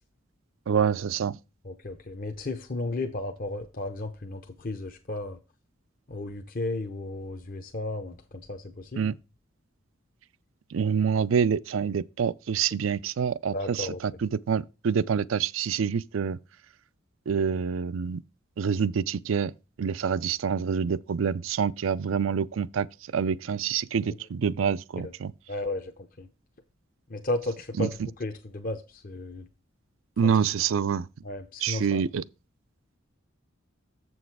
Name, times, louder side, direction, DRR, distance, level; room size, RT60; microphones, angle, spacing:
voice 1, 0.7-1.4 9.0-9.2 10.7-16.4 17.3-18.2 18.6-19.5 19.8-22.9 23.1-25.3 27.8-27.9 30.2-31.1 31.6-32.2, right 7 dB, 70° right, 0.4 m, -26 dB
voice 2, 1.6-5.4 6.1-9.1 13.5-14.0 25.0-25.1 25.5-26.3 27.1-29.5 30.2-30.3 31.2-32.0, left 2 dB, 45° left, 0.8 m, -34 dB
7.6 x 6.2 x 4.7 m
head